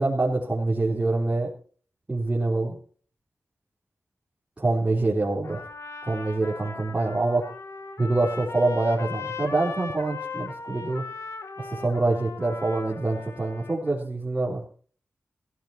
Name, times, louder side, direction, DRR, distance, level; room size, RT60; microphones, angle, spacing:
voice 1, 0.0-1.5 2.1-2.8 4.6-5.6 6.1-7.4 8.0-11.0 11.6-14.6, right 2 dB, 25° right, -5 dB, 3.9 m, -25 dB
Trumpet, 5.4-13.9, left 4 dB, 80° left, 1.8 m, -38 dB
17.0 x 13.0 x 4.4 m, 0.43 s
wide cardioid pair, 130°, 5 cm